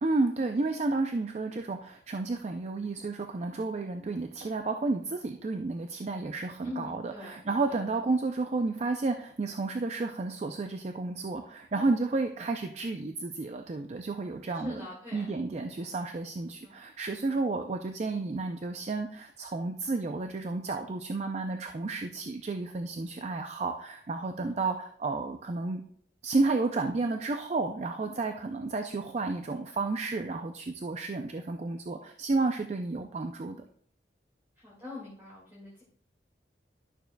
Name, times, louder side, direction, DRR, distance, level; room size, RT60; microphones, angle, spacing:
voice 1, 0.0-25.8 26.2-33.6, right 3 dB, 40° right, 6 dB, 0.4 m, -31 dB
voice 2, 6.6-7.4 7.6-7.8 14.5-15.2 16.6-16.8 24.2-24.6 28.0-28.2 34.6-35.8, left 3 dB, 15° right, -7 dB, 2.1 m, -43 dB
11.5 x 6.7 x 2.2 m, 0.63 s
head